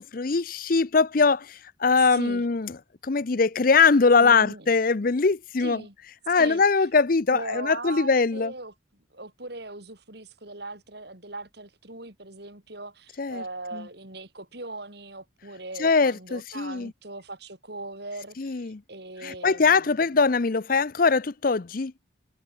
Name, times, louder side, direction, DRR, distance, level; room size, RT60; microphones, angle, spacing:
voice 1, 0.0-2.8 3.0-5.8 6.3-8.5 13.2-13.4 13.7-13.8 15.8-16.9 18.4-18.8 19.2-21.9, left 4 dB, 45° left, 0.6 m, -22 dB
voice 2, 2.0-2.4 4.2-4.7 5.6-5.9 6.4-6.6 7.3-8.7 9.1-20.1, right 2 dB, 55° right, 4.9 m, -39 dB
head